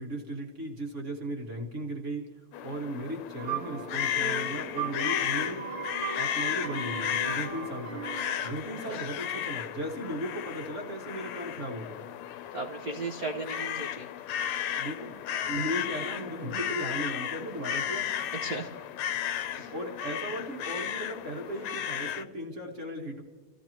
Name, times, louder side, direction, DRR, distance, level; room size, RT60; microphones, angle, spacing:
voice 1, 0.0-2.3 2.6-5.6 6.1-8.0 8.4-12.0 14.8-15.2 15.5-18.3 19.4-23.2, right 1 dB, 35° right, 2 dB, 1.3 m, -36 dB
sound 1, 2.5-22.2, left 10 dB, 75° left, 1.8 m, -34 dB
sound 2, 3.4-8.5, right 5 dB, 55° right, 1.7 m, -37 dB
voice 2, 12.5-14.1 18.4-18.7 19.5-19.7, right 3 dB, 75° right, 1 dB, 0.8 m, -36 dB
29.5 x 15.5 x 3.0 m, 1.4 s
omnidirectional pair, 3.3 m